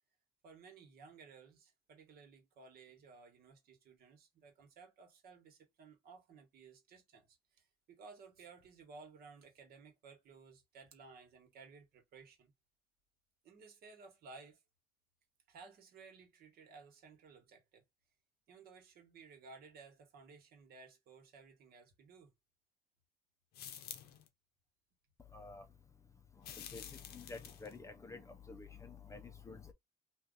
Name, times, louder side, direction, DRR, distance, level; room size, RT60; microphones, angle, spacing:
voice 1, 0.4-12.5 13.4-14.6 15.5-17.8 18.5-22.3, right 4 dB, 65° right, 1.3 m, -57 dB
sound 1, 23.5-24.3 26.4-27.8, left 9 dB, 70° left, 0.6 m, -49 dB
voice 2, 25.3-25.6 26.6-26.8 27.1-29.7, left 4 dB, 15° left, 0.5 m, -50 dB
2.8 x 2.3 x 3.8 m
cardioid pair, 110°, 17 cm